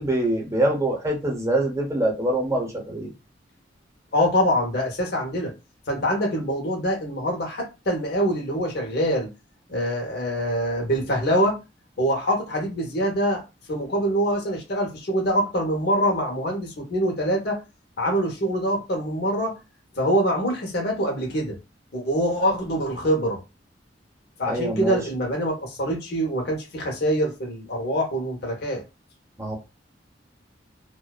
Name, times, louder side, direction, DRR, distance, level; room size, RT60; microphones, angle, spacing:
voice 1, 0.0-3.1 24.4-25.0 29.4-29.5, right 1 dB, 15° right, 0 dB, 0.7 m, -24 dB
voice 2, 4.1-5.5 5.9-9.3 9.7-11.6 12.0-13.4 13.7-17.6 18.0-19.5 20.0-21.6 21.9-23.4 24.4-28.8, equal, 60° left, 0 dB, 0.9 m, -24 dB
2.5 x 2.3 x 2.3 m, 0.26 s
head